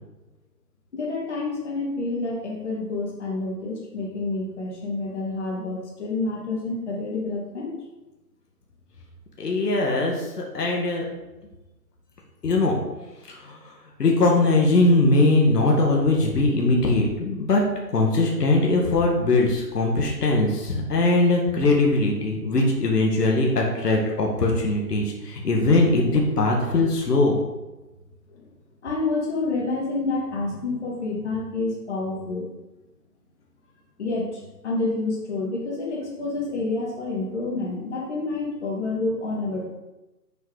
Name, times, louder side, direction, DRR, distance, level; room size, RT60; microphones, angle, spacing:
voice 1, 0.9-7.7 28.3-28.5 28.8-32.5 34.0-39.7, left 3 dB, 45° left, -3 dB, 2.4 m, -28 dB
voice 2, 9.4-11.1 12.4-12.8 13.3-13.7 14.0-17.6 17.9-27.4, left 2 dB, 70° left, 0 dB, 1.9 m, -21 dB
7.5 x 5.4 x 4.9 m, 1.0 s
hypercardioid pair, 165°, 49 cm